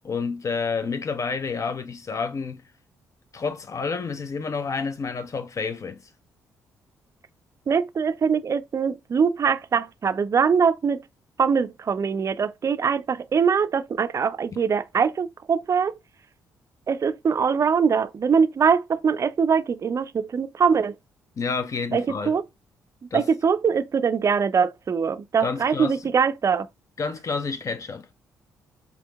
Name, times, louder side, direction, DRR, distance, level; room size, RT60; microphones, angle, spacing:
voice 1, 0.0-2.6 3.3-6.0 21.4-22.3 23.1-23.3 25.4-26.0 27.0-28.1, left 5 dB, 40° left, 0.6 m, -29 dB
voice 2, 7.7-11.0 11.4-15.9 16.9-20.9 21.9-22.4 23.1-26.7, right 6 dB, 40° right, 0.4 m, -22 dB
4.3 x 2.7 x 2.2 m
hypercardioid pair, 45°, 8 cm